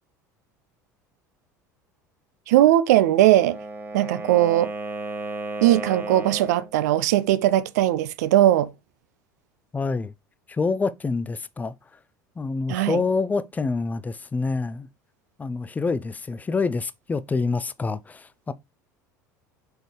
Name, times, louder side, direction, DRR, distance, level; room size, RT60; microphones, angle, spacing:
voice 1, 2.5-3.6 3.9-4.7 5.6-8.7 12.7-13.0, right 13 dB, 60° right, 0.6 m, -19 dB
Wind instrument woodwind instrument, 3.2-6.7, right 2 dB, 25° right, 2.0 m, -34 dB
voice 2, 9.7-10.1 10.5-11.7 12.4-14.9 15.4-18.5, left 4 dB, 15° left, 0.6 m, -27 dB
6.2 x 5.2 x 3.2 m
figure-of-eight pair, 70°, 10 cm